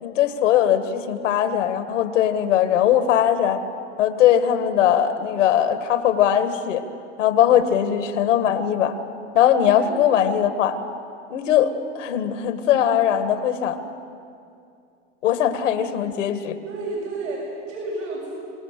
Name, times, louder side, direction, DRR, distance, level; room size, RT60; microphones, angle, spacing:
voice 1, 0.0-3.6 4.0-6.8 7.2-9.0 9.3-10.8 11.3-13.8 15.2-16.6, left 10 dB, 80° left, 9 dB, 1.7 m, -20 dB
voice 2, 16.7-18.3, right 2 dB, 80° right, -4 dB, 6.9 m, -31 dB
26.0 x 19.5 x 6.8 m, 2.5 s
hypercardioid pair, 105°, 37 cm